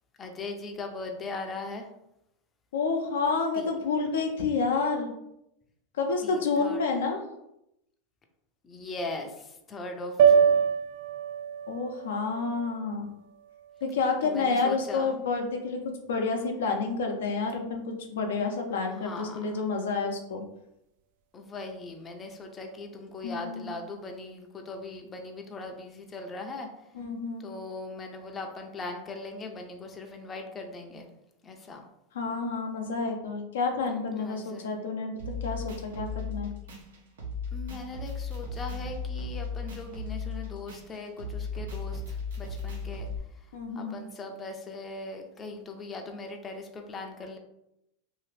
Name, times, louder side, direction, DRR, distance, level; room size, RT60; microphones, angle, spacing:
voice 1, 0.2-1.9 3.6-3.7 6.2-6.8 8.6-10.6 14.2-15.1 18.9-19.4 21.3-26.7 27.4-31.1 31.4-31.8 34.2-34.8 37.5-43.1 43.7-47.4, left 3 dB, 20° left, 3 dB, 0.4 m, -39 dB
voice 2, 2.7-5.1 6.0-7.2 11.7-13.1 13.8-15.8 16.1-20.4 23.2-23.7 26.9-27.4 32.1-35.1 35.4-36.5 43.5-43.9, left 4 dB, 90° left, 3 dB, 0.6 m, -29 dB
sound 1, 10.2-14.5, right 7 dB, 65° right, 0.3 m, -26 dB
sound 2, 35.2-43.2, left 4 dB, 90° right, 0.8 m, -36 dB
2.7 x 2.4 x 3.2 m, 0.82 s
supercardioid pair, 130°, 0 cm